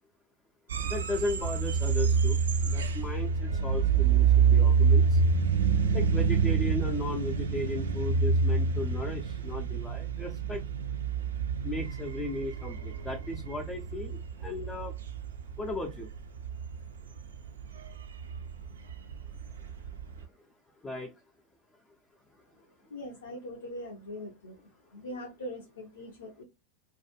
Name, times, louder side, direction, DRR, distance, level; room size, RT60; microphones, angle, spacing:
sound 1, 0.7-20.2, right 5 dB, 65° right, 0.3 m, -27 dB
voice 1, 0.8-2.4 2.6-5.2 5.9-10.6 11.6-14.9 15.6-16.1 20.8-21.1, left 2 dB, 10° left, 2 dB, 0.4 m, -36 dB
voice 2, 22.9-24.6 24.9-26.4, left 1 dB, 70° left, 1 dB, 0.5 m, -41 dB
2.3 x 2.2 x 2.7 m, 0.25 s
figure-of-eight pair, 90°, 0 cm